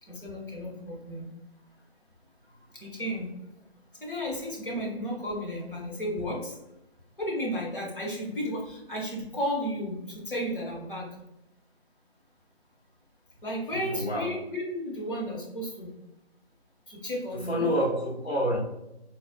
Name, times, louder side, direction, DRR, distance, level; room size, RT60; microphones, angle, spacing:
voice 1, 0.0-1.3 2.5-3.3 3.9-6.6 7.2-11.2 13.4-15.9 16.9-17.7, equal, 55° left, -3 dB, 1.0 m, -33 dB
voice 2, 13.7-14.3 17.5-18.6, equal, 75° left, -2 dB, 1.0 m, -27 dB
4.0 x 2.1 x 2.2 m, 0.89 s
figure-of-eight pair, 160°, 32 cm